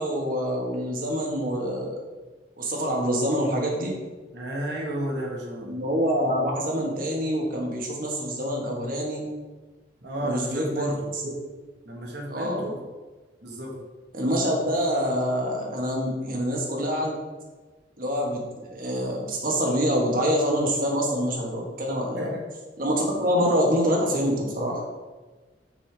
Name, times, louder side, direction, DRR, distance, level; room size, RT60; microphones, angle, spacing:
voice 1, 0.0-1.9 2.6-3.9 5.6-9.2 10.2-11.4 12.3-12.7 14.1-17.2 18.0-22.3 22.8-24.8, equal, 50° right, -1 dB, 1.3 m, -26 dB
voice 2, 4.3-5.7 10.0-11.1 11.8-12.8 13.4-13.8 22.2-22.4, right 1 dB, 65° right, -2 dB, 1.5 m, -32 dB
6.2 x 5.5 x 3.4 m, 1.3 s
head